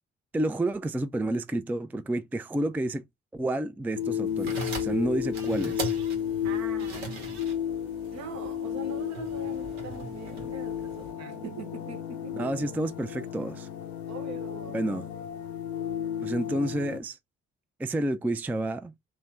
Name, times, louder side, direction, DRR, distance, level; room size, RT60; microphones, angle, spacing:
voice 1, 0.3-3.0 3.3-6.0 12.3-13.7 14.7-15.1 16.2-17.2 17.8-18.9, right 1 dB, 5° right, 0.4 m, -30 dB
sound 1, 4.0-17.0, left 9 dB, 85° left, 0.6 m, -33 dB
sound 2, 4.3-11.1, right 4 dB, 80° right, 1.3 m, -41 dB
voice 2, 6.4-7.3 8.1-12.5 14.1-14.8, right 3 dB, 55° right, 1.1 m, -42 dB
3.2 x 2.7 x 4.4 m
hypercardioid pair, 45°, 31 cm